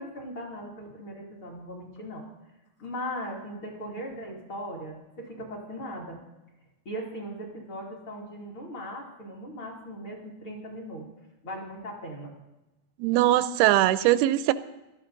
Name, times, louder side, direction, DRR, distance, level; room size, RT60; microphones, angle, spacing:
voice 1, 0.0-2.3 2.8-6.2 6.8-11.1 11.4-12.3, equal, 35° left, -3 dB, 2.8 m, -38 dB
voice 2, 13.0-14.5, right 14 dB, 85° right, 14 dB, 2.5 m, -21 dB
17.0 x 12.5 x 3.9 m, 1.0 s
omnidirectional pair, 4.4 m